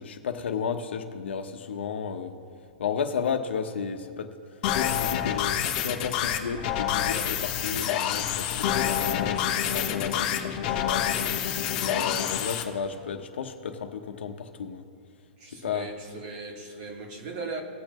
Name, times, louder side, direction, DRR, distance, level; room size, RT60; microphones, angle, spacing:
voice 1, 0.0-2.3 2.8-4.3 4.8-11.0 11.8-14.8 15.6-15.9, left 6 dB, 75° left, 1.1 m, -33 dB
sound 1, 4.6-12.6, left 10 dB, 35° left, 1.1 m, -27 dB
voice 2, 11.4-12.0 15.4-17.6, right 4 dB, 40° right, 2.0 m, -39 dB
19.5 x 6.8 x 3.1 m
hypercardioid pair, 155°, 6 cm